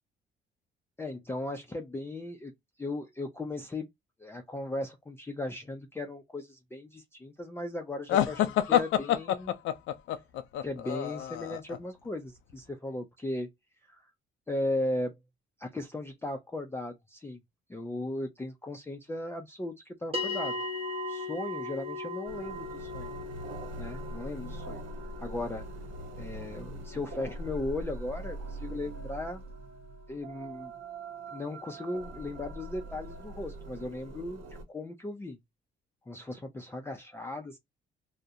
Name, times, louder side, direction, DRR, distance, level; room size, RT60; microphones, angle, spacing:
voice 1, 1.0-2.5 2.8-3.9 4.2-9.6 10.6-13.5 13.9-14.1 14.5-15.2 15.6-17.4 17.7-20.6 21.1-23.1 23.8-24.8 25.2-25.7 26.2-29.4 30.1-30.7 31.3-35.4 36.1-37.6, left 2 dB, 10° left, 0.4 m, -37 dB
sound 1, 8.1-11.8, left 11 dB, 85° left, 0.4 m, -27 dB
sound 2, 20.1-30.7, left 2 dB, 30° right, 0.7 m, -40 dB
sound 3, 22.3-34.6, right 2 dB, 90° right, 0.8 m, -42 dB
2.4 x 2.0 x 2.6 m
cardioid pair, 90°, 20 cm